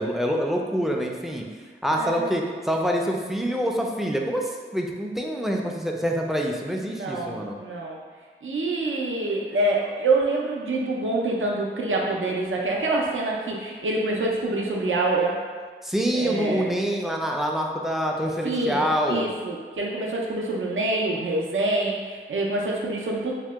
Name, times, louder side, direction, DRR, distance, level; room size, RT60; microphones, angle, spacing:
voice 1, 0.0-1.5 1.8-7.6 15.8-19.3, equal, ahead, 0 dB, 0.3 m, -26 dB
voice 2, 2.0-2.3 6.7-8.0 8.4-15.3 16.1-16.7 18.4-18.8 19.1-23.3, right 2 dB, 70° right, -2 dB, 0.5 m, -26 dB
2.8 x 2.1 x 3.4 m, 1.5 s
wide cardioid pair, 50°, 21 cm